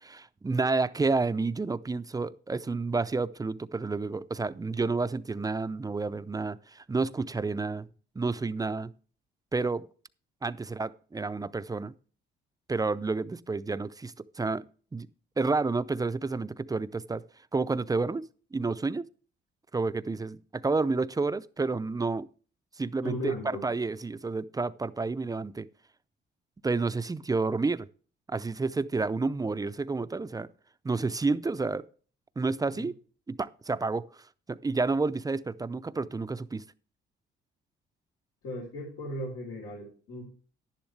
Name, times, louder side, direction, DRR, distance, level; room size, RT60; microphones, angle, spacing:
voice 1, 0.0-7.9 8.2-8.9 9.5-9.9 10.4-11.9 12.7-14.7 14.9-15.1 15.4-17.2 17.5-18.2 18.5-19.1 19.7-22.3 22.8-25.7 26.6-27.9 28.3-30.5 30.8-31.8 32.4-32.9 33.3-34.0 34.5-36.6, right 3 dB, 20° right, 0.5 m, -30 dB
voice 2, 23.0-23.6 32.7-32.9 38.4-40.2, left 1 dB, 90° left, 3.9 m, -36 dB
11.0 x 10.5 x 3.3 m
cardioid pair, 90°, 20 cm